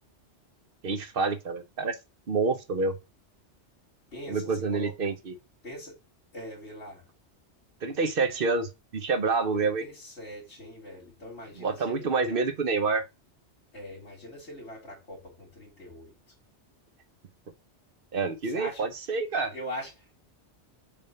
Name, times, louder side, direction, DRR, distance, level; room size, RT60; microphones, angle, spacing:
voice 1, 0.8-2.0 2.3-3.0 4.3-5.3 7.8-9.8 11.6-13.0 18.1-19.5, right 4 dB, 55° right, 1.0 m, -28 dB
voice 2, 4.1-4.9 5.6-5.9 6.3-7.0 9.5-12.4 13.7-16.1 18.5-18.9 19.5-20.2, equal, 70° left, 2.6 m, -42 dB
6.8 x 2.6 x 5.6 m
omnidirectional pair, 1.2 m